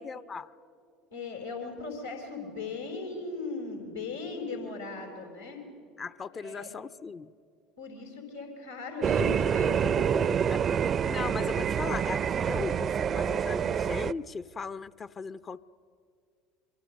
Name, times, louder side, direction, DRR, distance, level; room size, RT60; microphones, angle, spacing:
voice 1, 0.0-0.5 6.0-7.3 10.5-15.6, left 5 dB, 30° left, 16 dB, 0.5 m, -38 dB
voice 2, 1.1-5.6 6.4-6.7 7.8-10.5, left 3 dB, 90° left, 2 dB, 3.9 m, -38 dB
sound 1, 9.0-14.1, right 8 dB, 40° right, 0.5 m, -27 dB
25.5 x 24.0 x 6.5 m, 2.2 s
figure-of-eight pair, 70°, 0 cm